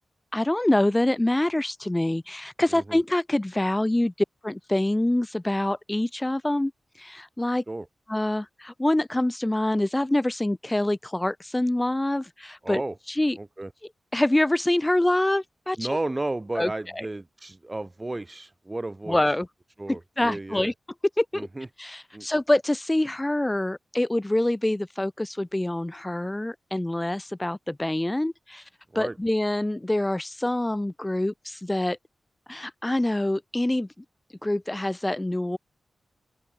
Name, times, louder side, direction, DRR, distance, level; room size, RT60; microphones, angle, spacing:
voice 1, 0.3-4.1 4.4-6.7 7.0-7.6 8.1-12.8 13.2-13.4 14.1-15.8 16.6-17.1 19.1-19.5 19.9-20.7 21.2-21.5 21.8-28.6 29.0-32.0 32.5-33.9 34.4-35.6, left 1 dB, 15° left, 1.8 m, -25 dB
voice 2, 2.7-3.0 7.7-7.9 12.6-13.0 13.4-13.7 15.8-19.4 19.8-20.7 21.3-21.7 22.1-22.3 28.9-29.2, right 2 dB, 20° right, 6.0 m, -33 dB
open air
wide cardioid pair, 95°, 0 cm